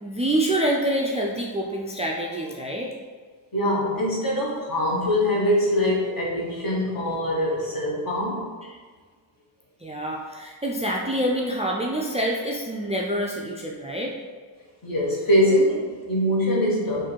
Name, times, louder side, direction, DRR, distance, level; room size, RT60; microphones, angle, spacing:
voice 1, 0.0-2.9 8.7-8.8 9.8-14.1, right 1 dB, 15° right, -2 dB, 0.3 m, -26 dB
voice 2, 3.5-8.5 14.8-17.1, equal, 50° left, -4 dB, 1.3 m, -23 dB
3.6 x 2.6 x 4.4 m, 1.5 s
cardioid pair, 90°, 45 cm